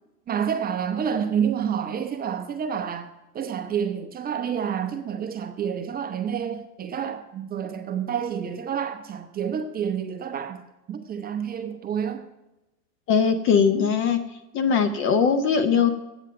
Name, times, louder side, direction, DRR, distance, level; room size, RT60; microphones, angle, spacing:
voice 1, 0.3-3.1 3.3-10.6 10.9-12.3, right 8 dB, 20° right, 0.7 m, -28 dB
voice 2, 13.1-14.2 14.5-15.9, left 6 dB, 25° left, 0.7 m, -20 dB
8.8 x 7.5 x 6.3 m
hypercardioid pair, 95°, 49 cm